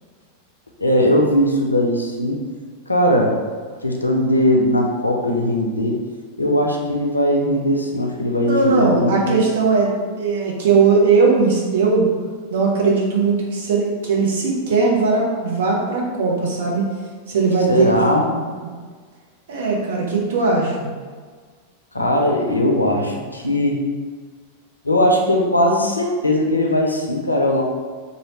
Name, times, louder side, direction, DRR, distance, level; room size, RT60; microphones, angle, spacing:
voice 1, 0.8-2.4 2.9-3.4 3.8-6.0 6.4-9.1 17.7-18.2 21.9-23.8 24.8-27.6, left 1 dB, 85° left, 1 dB, 0.4 m, -19 dB
voice 2, 8.4-9.9 10.2-12.1 12.5-16.9 17.3-17.9 18.3-18.4 19.5-20.9, right 4 dB, 60° right, -2 dB, 0.7 m, -18 dB
2.8 x 2.7 x 3.0 m, 1.5 s
figure-of-eight pair, 90°, 0 cm